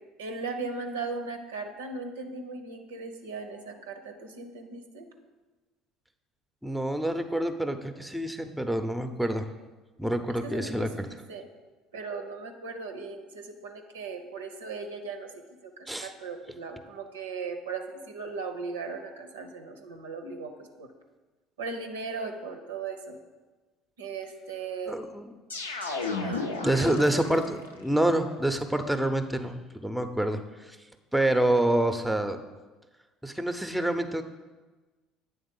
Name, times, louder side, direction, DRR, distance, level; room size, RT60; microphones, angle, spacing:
voice 1, 0.2-5.1 10.3-11.5 11.9-15.3 15.6-20.9 21.6-23.2 24.0-25.0 26.2-26.5 26.8-27.2, right 4 dB, 80° right, 5 dB, 0.7 m, -38 dB
voice 2, 6.6-9.5 10.0-11.1 15.9-16.1 24.9-25.3 26.1-26.2 26.6-30.8 31.1-32.4 33.2-34.2, right 1 dB, ahead, 7 dB, 0.6 m, -27 dB
sound 1, 25.5-27.7, left 3 dB, 85° left, 0.5 m, -33 dB
8.7 x 3.6 x 5.4 m, 1.2 s
hypercardioid pair, 60°, 0 cm